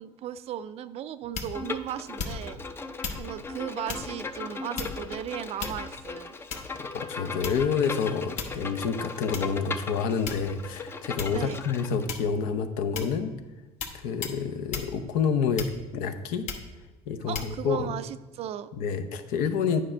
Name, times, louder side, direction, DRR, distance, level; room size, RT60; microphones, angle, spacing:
voice 1, 0.0-2.6 3.2-6.3 11.3-11.6 17.3-18.7, right 10 dB, 45° right, 13 dB, 0.4 m, -36 dB
sound 1, 1.3-1.7 2.2-2.6 3.0-3.3 3.9-4.1 4.8-5.1 5.6-6.0 6.5-6.8 7.4-7.8 8.4-8.7 9.3-9.5 10.3-10.7 11.2-11.4 12.1-12.4 13.0-13.2 13.8-14.0 14.2-14.4 14.7-14.9 15.6-16.0 16.5-16.7 17.3-17.5, left 5 dB, 55° left, 1.1 m, -35 dB
Bowed string instrument, 1.5-12.1, left 4 dB, 15° left, 0.5 m, -38 dB
voice 2, 6.9-13.3 13.9-16.4 17.1-17.9 18.7-19.8, left 6 dB, 75° left, 8 dB, 0.7 m, -28 dB
9.5 x 5.0 x 4.4 m, 1.1 s
cardioid pair, 115°, 15 cm